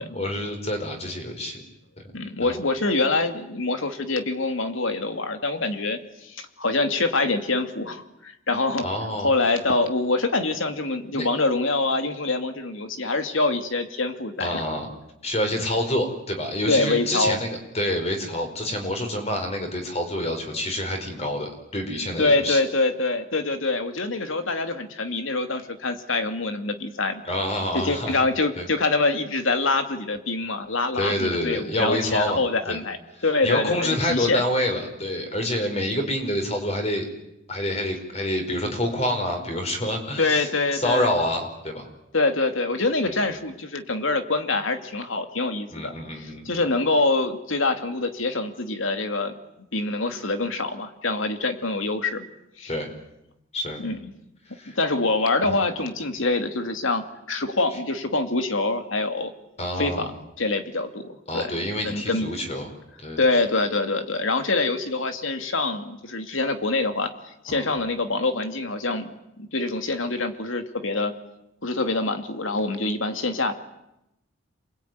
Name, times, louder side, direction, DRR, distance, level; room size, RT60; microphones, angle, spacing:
voice 1, 0.0-1.6 2.4-2.6 8.8-9.3 11.1-11.3 14.4-14.9 15.2-22.6 27.2-28.2 28.6-28.7 30.9-32.8 33.4-37.1 37.5-41.9 45.7-46.6 52.7-52.9 53.5-53.8 54.5-54.8 55.4-55.5 59.6-60.1 61.3-62.7 63.0-63.2 67.5-67.7, left 1 dB, 30° left, 4 dB, 5.1 m, -27 dB
voice 2, 2.1-8.8 9.2-14.6 16.7-17.4 22.2-27.2 27.7-33.0 33.2-34.4 40.2-41.1 42.1-49.3 49.7-52.3 52.6-52.7 53.8-54.1 54.8-59.3 59.8-60.1 60.4-61.5 61.8-62.3 63.2-71.1 71.6-73.5, left 3 dB, 80° left, 7 dB, 2.5 m, -25 dB
27.5 x 21.5 x 9.5 m, 0.88 s
head